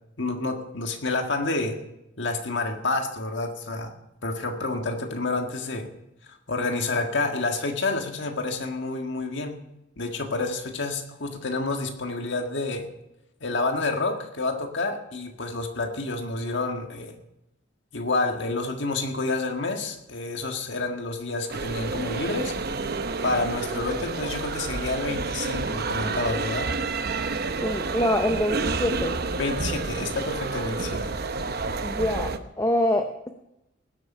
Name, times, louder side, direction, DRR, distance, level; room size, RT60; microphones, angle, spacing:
voice 1, 0.2-1.8 2.2-3.9 4.2-5.9 6.5-9.6 10.0-12.9 13.4-17.1 17.9-22.5 23.2-26.7 29.4-31.2, left 3 dB, 65° left, 4 dB, 1.7 m, -29 dB
sound 1, 21.5-32.4, right 3 dB, 55° right, 0.8 m, -29 dB
voice 2, 27.6-29.2 31.8-33.3, left 1 dB, 15° left, 6 dB, 0.7 m, -25 dB
19.0 x 8.2 x 5.6 m, 0.87 s
head